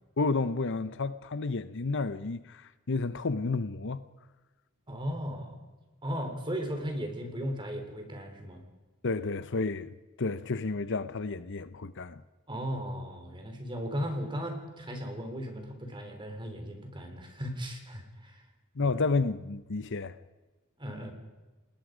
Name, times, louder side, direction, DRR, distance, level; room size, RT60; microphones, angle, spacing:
voice 1, 0.2-4.0 9.0-12.2 18.8-20.1, left 3 dB, 55° left, 0.8 m, -31 dB
voice 2, 4.9-5.6 6.0-8.6 12.5-18.5 18.8-19.0 20.8-21.1, equal, 20° right, 3.7 m, -36 dB
29.0 x 19.5 x 5.1 m
head